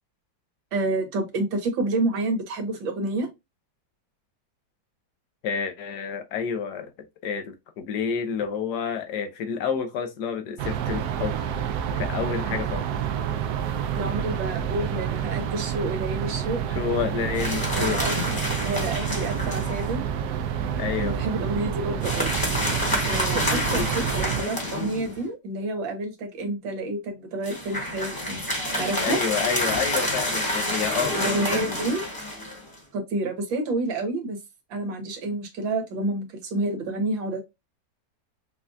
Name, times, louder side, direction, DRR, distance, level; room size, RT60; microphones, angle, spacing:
voice 1, 0.7-3.3 13.9-16.6 17.7-18.2 18.6-20.0 21.0-22.4 23.1-28.4 28.7-29.4 31.1-32.0 32.9-34.4 34.7-37.4, right 2 dB, 90° right, 1.8 m, -29 dB
voice 2, 5.4-6.9 7.2-11.4 11.9-12.9 16.7-18.0 20.8-21.2 23.7-24.0 29.0-31.9, left 7 dB, 65° left, 1.3 m, -29 dB
sound 1, 10.6-24.4, right 8 dB, 70° right, 0.9 m, -28 dB
sound 2, 17.4-19.9 22.0-25.3 27.4-32.8, left 1 dB, 15° left, 1.1 m, -28 dB
5.4 x 2.4 x 2.5 m
omnidirectional pair, 2.0 m